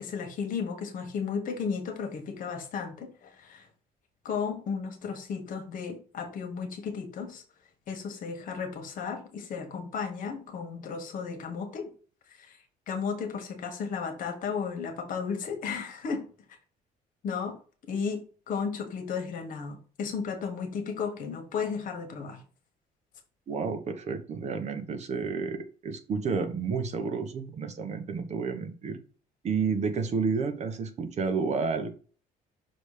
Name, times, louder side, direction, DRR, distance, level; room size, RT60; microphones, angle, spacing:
voice 1, 0.0-3.7 4.2-7.4 7.9-11.9 12.3-12.6 12.9-16.2 17.2-17.6 17.9-22.4, left 6 dB, 60° left, 5 dB, 1.6 m, -34 dB
voice 2, 23.5-29.0 29.4-31.9, right 5 dB, 45° right, 7 dB, 1.0 m, -30 dB
6.2 x 3.4 x 5.0 m, 0.39 s
cardioid pair, 145°, 16 cm